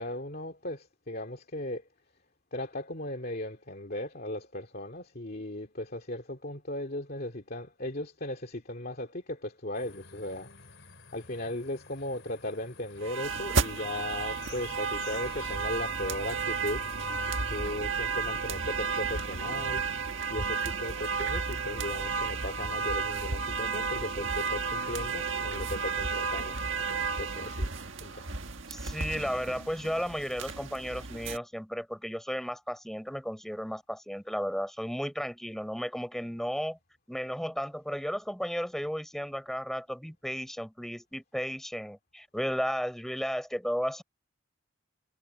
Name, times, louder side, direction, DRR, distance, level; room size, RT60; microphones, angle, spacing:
voice 1, 0.0-1.8 2.5-10.8 11.1-16.8 17.5-19.8 20.3-26.6 26.9-27.7 28.0-28.3, left 1 dB, 45° left, 2.5 m, -37 dB
sound 1, 9.7-17.8, left 3 dB, 65° left, 3.9 m, -50 dB
sound 2, 13.0-31.4, right 4 dB, 70° right, 1.6 m, -32 dB
voice 2, 28.7-36.8 37.1-44.0, equal, ahead, 4.4 m, -34 dB
head